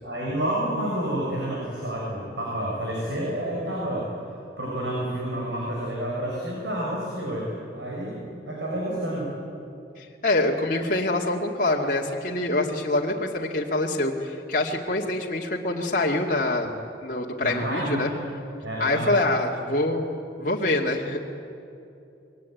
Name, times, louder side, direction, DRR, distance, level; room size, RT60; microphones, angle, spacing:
voice 1, 0.0-4.1 4.6-9.3 17.4-18.2 18.6-19.2, right 1 dB, 85° right, -3 dB, 7.0 m, -29 dB
voice 2, 10.0-16.7 17.0-18.1 18.8-20.1 20.4-21.2, left 2 dB, 45° left, -2 dB, 2.4 m, -25 dB
27.5 x 23.0 x 9.4 m, 2.7 s
head